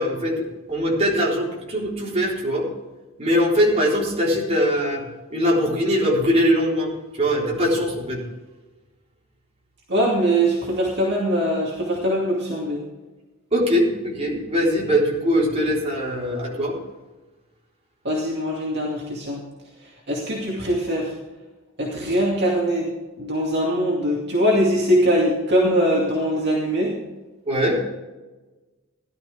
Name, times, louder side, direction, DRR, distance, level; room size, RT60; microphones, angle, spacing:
voice 1, 0.0-2.7 3.2-5.0 5.3-6.9 7.2-8.2 13.5-16.8 27.5-27.8, equal, 30° right, -4 dB, 4.0 m, -21 dB
voice 2, 9.9-12.8 18.0-19.4 20.1-21.1 21.8-22.9 23.2-27.0, equal, 50° right, -3 dB, 2.4 m, -22 dB
17.0 x 12.0 x 3.5 m, 1.2 s
head